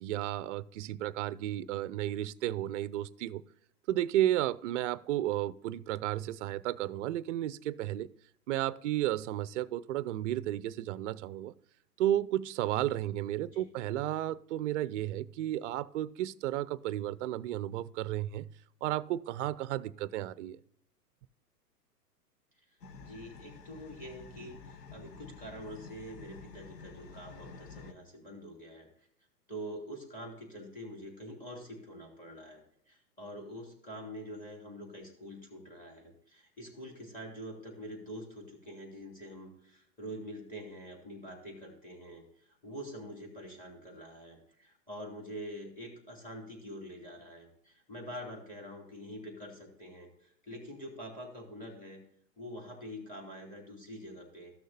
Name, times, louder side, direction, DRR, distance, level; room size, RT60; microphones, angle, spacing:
voice 1, 0.0-3.4 3.9-8.1 8.5-11.5 12.0-18.5 18.8-20.6, right 13 dB, 50° right, 18 dB, 0.5 m, -33 dB
sound 1, 22.8-27.9, left 4 dB, 80° left, 1.2 m, -50 dB
voice 2, 23.0-28.9 29.5-52.0 52.4-54.5, equal, 15° left, 0 dB, 3.0 m, -45 dB
13.5 x 6.4 x 2.8 m, 0.69 s
hypercardioid pair, 125°, 49 cm